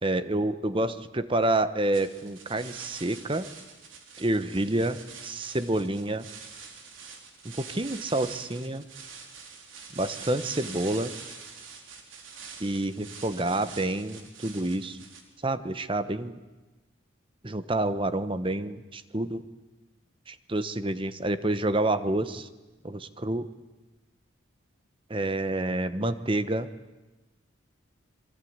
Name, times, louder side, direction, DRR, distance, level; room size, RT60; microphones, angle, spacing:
voice 1, 0.0-3.5 4.2-6.3 7.4-8.8 10.0-11.1 12.6-15.0 15.4-16.4 17.4-19.4 20.3-22.5 22.8-23.5 25.1-26.7, right 1 dB, 25° right, 12 dB, 1.1 m, -28 dB
sound 1, 1.9-15.2, right 5 dB, 80° right, 3.9 m, -45 dB
26.5 x 23.0 x 9.6 m, 1.1 s
head